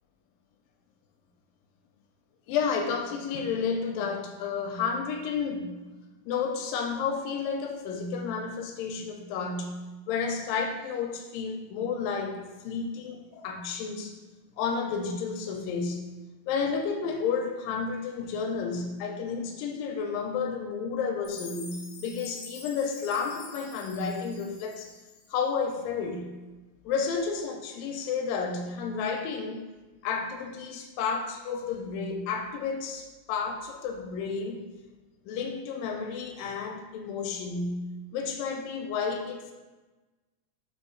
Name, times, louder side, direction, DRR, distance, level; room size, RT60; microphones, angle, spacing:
voice 1, 2.5-5.8 6.3-9.7 10.1-14.2 14.6-16.0 16.5-24.9 25.3-26.3 26.9-29.6 30.0-34.6 35.3-37.8 38.1-39.5, left 5 dB, 80° left, 4 dB, 2.2 m, -31 dB
Chime, 21.2-25.5, left 4 dB, 65° left, 2.0 m, -47 dB
5.1 x 4.4 x 5.6 m, 1.2 s
omnidirectional pair, 4.1 m